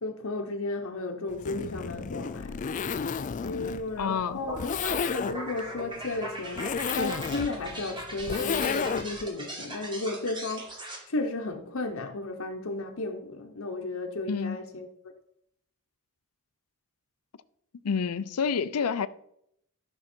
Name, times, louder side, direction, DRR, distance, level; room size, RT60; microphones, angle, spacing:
voice 1, 0.0-2.6 3.4-4.6 5.1-6.6 6.9-10.7 11.1-14.9, left 2 dB, 65° left, 0.9 m, -34 dB
Zipper (clothing), 1.3-9.3, left 6 dB, 35° left, 0.3 m, -32 dB
voice 2, 4.0-4.4 14.3-14.6 17.8-19.1, left 6 dB, 90° left, 0.5 m, -28 dB
sound 1, 4.1-11.0, right 1 dB, 20° right, 1.9 m, -40 dB
13.5 x 6.4 x 4.4 m
head